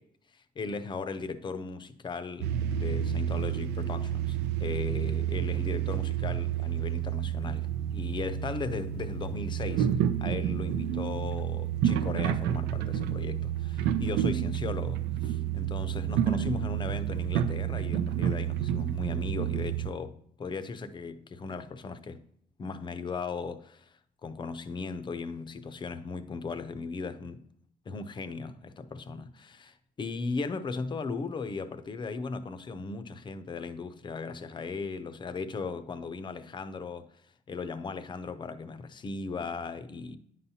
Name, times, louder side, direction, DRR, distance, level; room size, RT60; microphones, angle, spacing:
voice 1, 0.3-9.9 10.2-22.2 22.6-27.5 27.9-37.2 37.5-40.2, left 4 dB, 30° left, 0.5 m, -37 dB
sound 1, 2.4-19.9, right 10 dB, 85° right, 0.5 m, -30 dB
9.6 x 5.6 x 2.7 m
cardioid pair, 110°, 17 cm